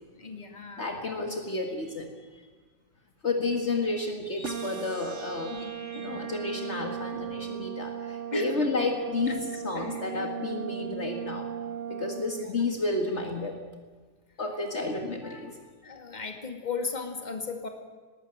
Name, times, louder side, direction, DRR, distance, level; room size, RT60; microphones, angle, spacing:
voice 1, 0.2-0.9 5.5-5.7 8.3-8.7 9.3-9.4 9.7-10.3 10.5-10.7 12.4-12.6 15.8-17.7, left 4 dB, 30° left, 4 dB, 2.4 m, -36 dB
voice 2, 0.8-2.1 3.2-11.5 11.9-13.6 14.4-15.6, left 3 dB, 50° left, 3 dB, 2.1 m, -31 dB
sound 1, 4.4-12.4, right 9 dB, 55° right, 1.5 m, -37 dB
19.5 x 18.5 x 8.8 m, 1.4 s
omnidirectional pair, 1.5 m